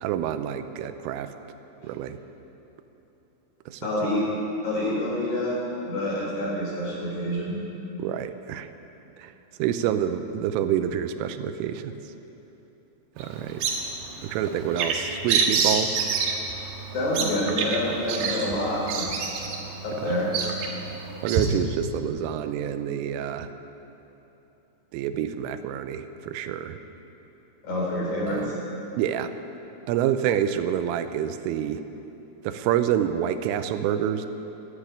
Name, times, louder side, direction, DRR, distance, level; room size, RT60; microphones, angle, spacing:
voice 1, 0.0-1.3 1.8-2.2 3.7-3.9 8.0-8.7 9.2-9.3 9.6-11.9 13.2-13.7 14.2-16.2 20.0-20.2 21.2-23.5 24.9-26.8 28.3-28.6 29.0-29.3 29.9-31.8 32.4-34.3, right 10 dB, 90° right, 9 dB, 3.2 m, -27 dB
voice 2, 3.8-4.2 4.6-7.6 16.9-19.4 19.8-20.4 27.6-28.5, left 1 dB, 40° left, -4 dB, 4.7 m, -27 dB
Bird vocalization bird call bird song, 13.2-21.5, right 5 dB, 65° right, 2.8 m, -28 dB
13.5 x 12.0 x 8.8 m, 3.0 s
omnidirectional pair, 5.8 m